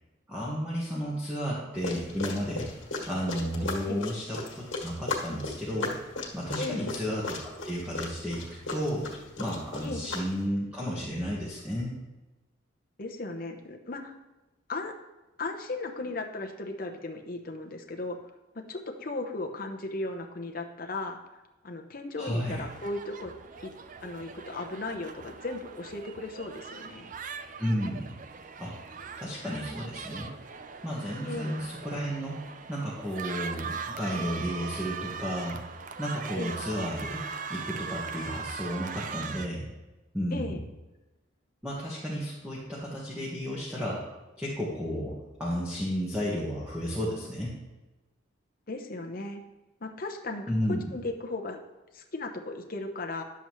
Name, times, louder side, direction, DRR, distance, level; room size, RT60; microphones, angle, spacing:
voice 1, 0.3-2.7 3.1-5.9 6.3-9.1 9.4-12.0 22.2-22.6 27.6-28.1 28.6-28.7 29.1-30.3 30.8-32.4 32.7-35.6 36.0-37.2 37.5-39.7 40.1-40.5 41.6-44.0 44.4-47.5 50.5-50.9, equal, 5° right, -7 dB, 1.3 m, -32 dB
sound 1, 1.7-10.5, left 3 dB, 85° left, 1.7 m, -37 dB
voice 2, 6.6-6.9 9.8-10.1 13.0-14.1 14.7-14.9 15.4-18.2 18.5-21.2 21.6-23.3 23.6-23.7 24.0-27.1 31.2-31.7 36.3-36.6 40.3-40.6 48.7-49.4 49.8-50.5 50.9-51.6 51.9-53.2, left 2 dB, 45° left, 4 dB, 0.8 m, -36 dB
sound 2, 22.6-39.5, right 6 dB, 40° right, 0.4 m, -40 dB
10.5 x 7.0 x 3.1 m, 1.1 s
head